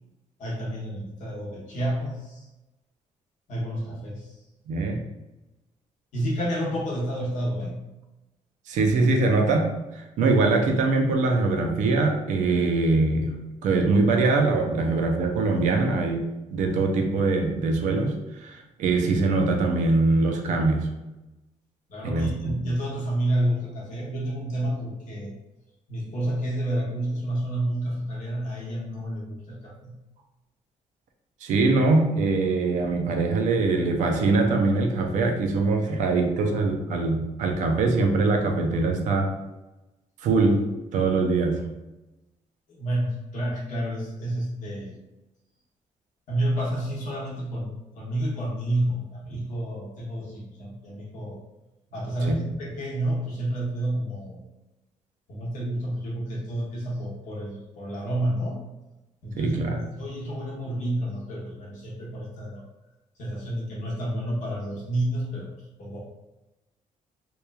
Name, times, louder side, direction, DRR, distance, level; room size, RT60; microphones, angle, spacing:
voice 1, 0.4-2.5 3.5-4.4 6.1-7.9 21.9-25.4 25.9-29.9 42.7-45.0 46.3-51.4 51.9-54.4 55.3-58.6 59.2-62.6 63.2-66.0, right 1 dB, 75° left, -4 dB, 0.8 m, -30 dB
voice 2, 4.7-5.0 8.7-20.9 22.0-22.5 31.4-39.3 40.2-40.7 40.9-41.7 52.3-52.4 59.4-59.8, right 3 dB, 75° right, 3 dB, 0.4 m, -23 dB
2.9 x 2.3 x 2.2 m, 1.0 s
cardioid pair, 165°, 13 cm